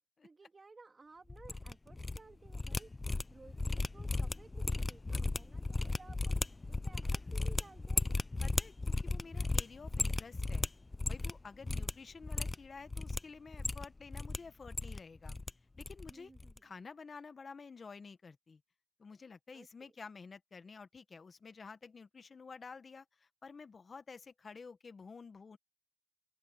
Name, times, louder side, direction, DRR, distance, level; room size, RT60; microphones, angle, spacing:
voice 1, 0.2-2.9 3.3-8.1 11.6-11.9 16.0-16.7 19.5-19.9, right 3 dB, 30° right, 1.9 m, -58 dB
sound 1, 1.3-2.2 2.4-11.4 11.6-11.9 12.2-13.2 13.5-14.4 14.6-15.5 15.8-16.1 16.4-16.6, left 3 dB, 20° left, 0.4 m, -35 dB
voice 2, 8.4-10.7 11.1-15.4 15.8-16.3 16.6-18.6 19.0-25.6, left 5 dB, 35° left, 1.4 m, -51 dB
open air
cardioid pair, 90°, 0 cm